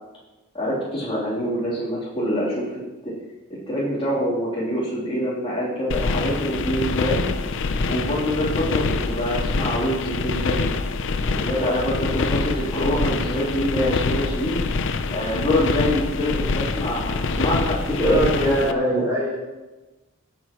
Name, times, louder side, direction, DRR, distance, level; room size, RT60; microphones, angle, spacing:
voice 1, 0.5-3.1 3.7-7.2 7.9-10.6 11.3-14.6 15.1-19.0, equal, 25° left, -8 dB, 3.2 m, -25 dB
sound 1, 5.9-18.7, left 3 dB, 60° left, 0.6 m, -25 dB
voice 2, 18.0-19.4, equal, 15° right, -6 dB, 3.6 m, -23 dB
16.0 x 7.9 x 3.0 m, 1.1 s
head